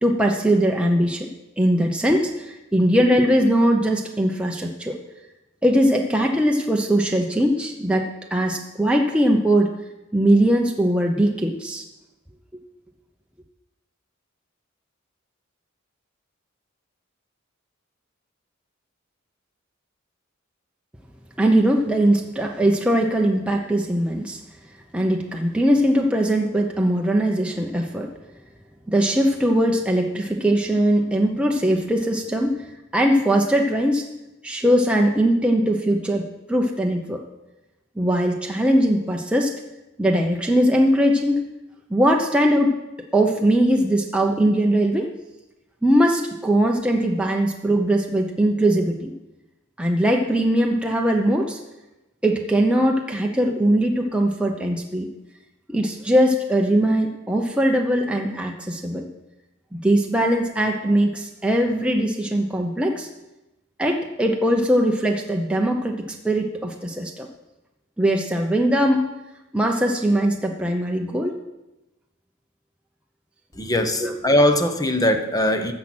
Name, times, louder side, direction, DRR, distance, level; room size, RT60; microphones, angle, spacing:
voice 1, 0.0-1.3 1.6-5.0 5.6-9.7 10.1-11.8 21.4-24.4 24.9-28.1 28.9-32.7 32.9-34.1 34.4-37.2 38.0-39.5 40.0-41.5 41.9-42.8 43.1-45.1 45.8-49.1 49.8-51.6 52.2-55.1 55.7-59.0 59.7-63.1 63.8-67.3 68.0-69.1 69.5-71.4 74.0-74.1, right 1 dB, 5° right, 1 dB, 0.8 m, -20 dB
voice 2, 73.5-75.7, left 1 dB, 20° left, 7 dB, 1.0 m, -20 dB
13.5 x 7.5 x 6.1 m, 0.98 s
head